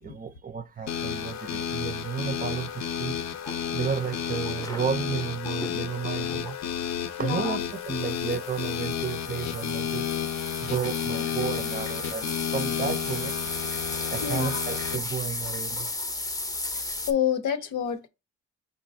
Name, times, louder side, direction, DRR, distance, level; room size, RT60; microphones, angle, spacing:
voice 1, 0.0-3.2 3.7-6.6 7.2-10.1 10.6-13.5 14.1-15.9, right 7 dB, 30° right, 0.5 m, -32 dB
sound 1, 0.9-15.0, left 8 dB, 65° left, 0.7 m, -32 dB
sound 2, 3.4-5.8 6.2-6.5 7.4-17.1, left 2 dB, 10° left, 0.7 m, -36 dB
voice 2, 7.2-7.6 14.2-14.7 16.7-18.1, left 9 dB, 85° left, 1.0 m, -29 dB
5.3 x 3.8 x 2.6 m
cardioid pair, 90°, 30 cm